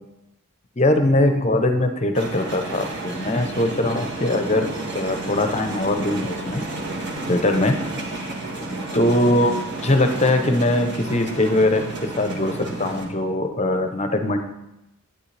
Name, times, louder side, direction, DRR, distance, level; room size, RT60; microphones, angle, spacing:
voice 1, 0.8-6.6 7.3-7.8 8.9-9.5 9.8-14.4, left 1 dB, 30° left, 6 dB, 0.8 m, -21 dB
sound 1, 2.1-13.1, right 2 dB, 50° right, 1.6 m, -31 dB
11.5 x 9.0 x 3.3 m, 0.90 s
head